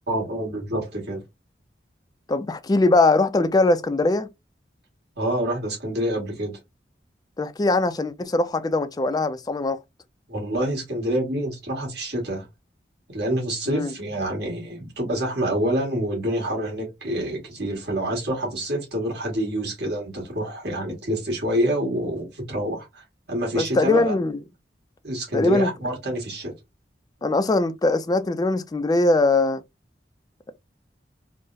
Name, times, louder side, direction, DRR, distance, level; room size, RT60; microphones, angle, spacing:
voice 1, 0.1-1.2 5.2-6.6 10.3-12.5 13.1-24.2 25.0-26.5, right 1 dB, 65° right, 1.7 m, -27 dB
voice 2, 2.3-4.3 7.4-9.8 13.7-13.9 23.5-24.4 25.3-25.7 27.2-29.6, left 2 dB, 20° left, 0.3 m, -21 dB
3.8 x 2.0 x 2.6 m
head